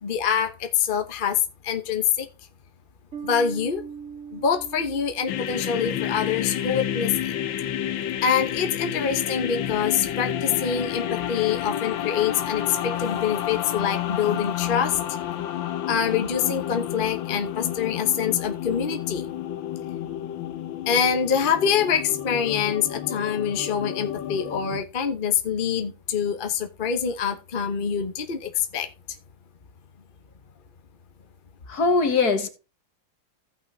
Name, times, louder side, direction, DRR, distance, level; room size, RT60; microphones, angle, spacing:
voice 1, 0.0-2.3 3.2-3.8 4.3-7.3 8.2-15.0 15.9-19.3 20.9-28.9, left 7 dB, 35° left, 0.9 m, -25 dB
Bass guitar, 3.1-6.6, right 6 dB, 40° right, 2.4 m, -41 dB
sound 1, 5.3-24.8, left 11 dB, 90° left, 1.6 m, -30 dB
voice 2, 31.7-32.5, left 4 dB, 55° left, 1.9 m, -21 dB
16.0 x 5.8 x 2.8 m
omnidirectional pair, 2.0 m